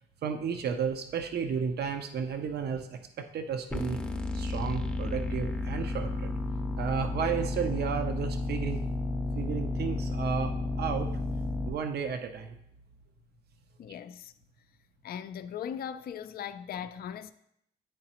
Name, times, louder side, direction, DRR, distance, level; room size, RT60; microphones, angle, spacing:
voice 1, 0.2-4.0 4.3-6.3 6.8-8.9 9.4-11.1 11.7-12.5, right 6 dB, 55° right, 0.6 m, -33 dB
sound 1, 3.7-11.7, left 2 dB, 5° left, 0.7 m, -32 dB
voice 2, 13.8-14.3 15.0-17.3, left 8 dB, 50° left, 0.4 m, -39 dB
10.0 x 3.9 x 2.9 m
cardioid pair, 90°, 20 cm